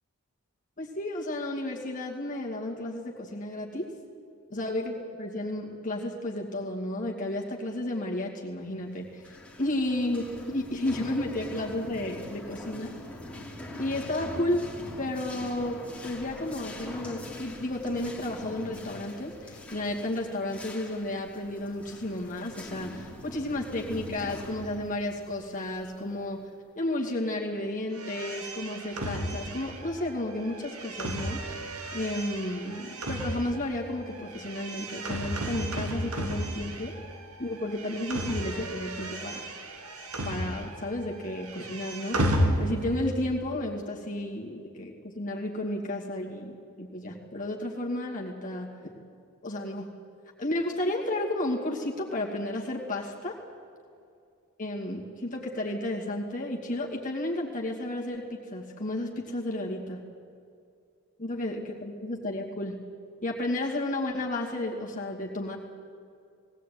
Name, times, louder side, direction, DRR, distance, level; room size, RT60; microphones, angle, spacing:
voice 1, 0.8-3.9 4.5-12.9 13.8-14.7 15.0-15.8 16.0-26.4 26.8-36.9 37.4-39.5 40.2-48.7 48.9-49.0 49.4-49.9 50.4-53.4 54.6-60.0 61.2-62.8 63.2-65.6, left 1 dB, 35° left, -2 dB, 2.5 m, -32 dB
sound 1, 9.1-26.5, left 1 dB, 5° left, 3.1 m, -43 dB
sound 2, 27.9-37.2 37.5-41.0 41.2-43.1, right 1 dB, 90° right, 2.4 m, -33 dB
20.0 x 18.0 x 9.4 m, 2.4 s
head